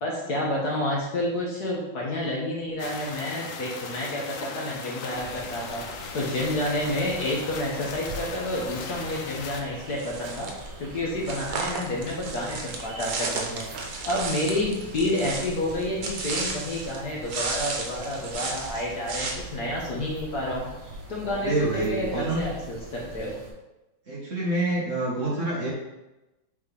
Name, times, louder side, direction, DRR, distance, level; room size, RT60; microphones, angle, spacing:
voice 1, 0.0-5.8 6.1-10.5 10.8-13.7 14.0-23.3, left 1 dB, 55° left, -3 dB, 1.5 m, -29 dB
sound 1, 2.8-9.6, left 5 dB, 90° left, 0.7 m, -38 dB
sound 2, 5.1-23.5, right 2 dB, 65° right, 1.9 m, -42 dB
sound 3, 9.9-10.7 11.2-17.0 17.3-19.3, right 4 dB, 90° right, 1.8 m, -33 dB
voice 2, 21.2-22.4 24.1-25.7, right 2 dB, 40° right, -5 dB, 1.4 m, -27 dB
7.3 x 4.4 x 3.3 m, 1.0 s
omnidirectional pair, 2.3 m